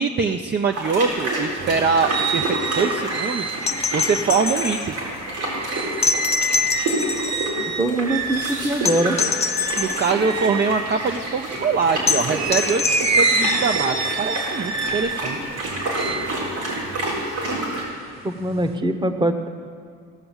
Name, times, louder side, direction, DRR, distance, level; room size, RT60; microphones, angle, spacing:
voice 1, 0.0-5.0 9.8-15.5, right 5 dB, 35° right, 4 dB, 0.6 m, -23 dB
sound 1, 0.7-17.8, right 1 dB, 85° right, 4.1 m, -29 dB
sound 2, 1.6-11.8 12.3-17.8 18.2-18.8, right 3 dB, 60° right, 1.0 m, -28 dB
sound 3, 3.6-4.9 6.0-7.5 8.8-10.1 12.1-13.5 15.3-15.4, left 5 dB, 20° left, 0.6 m, -25 dB
voice 2, 7.8-9.2 18.2-19.5, right 1 dB, 15° right, 8 dB, 1.0 m, -22 dB
17.0 x 6.8 x 7.1 m, 2.3 s
cardioid pair, 90°, 30 cm